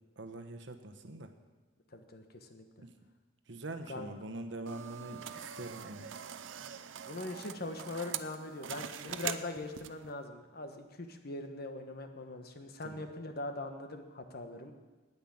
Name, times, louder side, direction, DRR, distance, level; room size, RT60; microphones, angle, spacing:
voice 1, 0.2-1.3 2.8-2.9 3.5-6.1 12.8-13.0, right 2 dB, 70° right, 7 dB, 1.1 m, -44 dB
voice 2, 1.9-2.6 3.9-4.1 7.1-14.7, left 2 dB, 55° left, 6 dB, 1.3 m, -41 dB
sound 1, 4.7-10.1, right 8 dB, 90° right, 0.6 m, -43 dB
9.7 x 9.2 x 8.6 m, 1.2 s
head